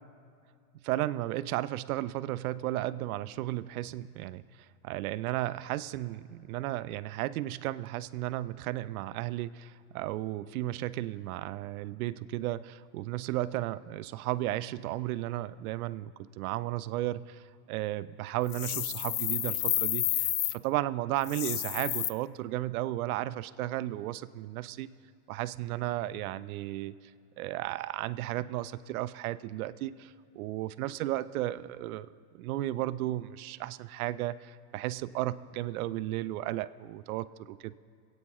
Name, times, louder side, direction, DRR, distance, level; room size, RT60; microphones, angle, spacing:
voice 1, 0.8-4.4 4.8-24.9 25.3-26.9 27.4-32.1 32.3-37.7, right 15 dB, 65° right, 15 dB, 0.5 m, -34 dB
sound 1, 18.5-20.6 21.2-22.1, left 13 dB, 55° left, 0.5 m, -30 dB
26.5 x 8.9 x 3.1 m, 2.4 s
supercardioid pair, 155°, 48 cm